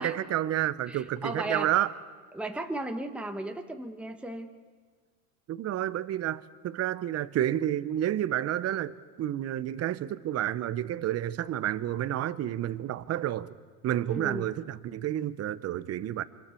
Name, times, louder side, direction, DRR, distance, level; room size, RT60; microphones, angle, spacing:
voice 1, 0.0-1.9 5.5-13.5 13.8-16.2, right 12 dB, 35° right, 0.8 m, -30 dB
voice 2, 0.9-1.7 2.3-4.5 14.1-14.5, right 1 dB, 5° right, 1.2 m, -35 dB
25.5 x 24.5 x 4.5 m
supercardioid pair, 105°, 43 cm